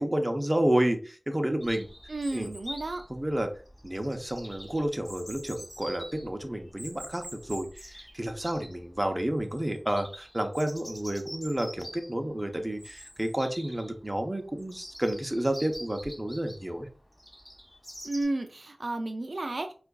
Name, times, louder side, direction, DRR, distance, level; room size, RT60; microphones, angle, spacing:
voice 1, 0.0-1.9 2.3-2.5 3.1-3.5 3.8-16.9, right 1 dB, 25° right, 5 dB, 0.6 m, -30 dB
Chirp tweet, 1.6-18.2, equal, 20° left, 1.7 m, -46 dB
voice 2, 2.1-3.0 18.0-19.7, right 2 dB, 75° right, 6 dB, 0.3 m, -32 dB
4.5 x 2.4 x 2.3 m, 0.38 s
wide cardioid pair, 45°, 0 cm